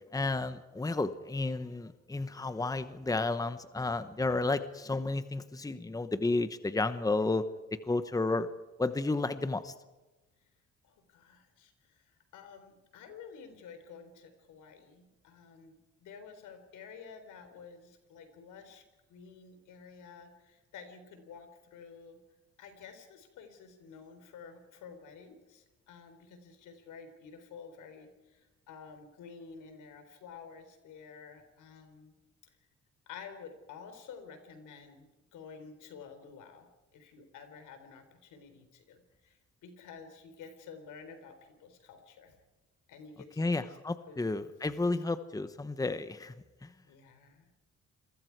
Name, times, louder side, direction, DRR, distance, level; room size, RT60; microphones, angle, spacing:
voice 1, 0.1-7.5 7.9-8.5 8.8-9.7 43.4-46.3 46.6-46.7, left 3 dB, 10° left, 11 dB, 1.1 m, -32 dB
voice 2, 10.8-18.8 19.1-22.2 22.6-32.1 32.4-32.6 33.1-42.3 42.9-43.8 44.0-44.4 46.8-47.5, left 6 dB, 85° left, 7 dB, 4.0 m, -51 dB
28.0 x 22.5 x 4.8 m, 1.1 s
cardioid pair, 90°, 30 cm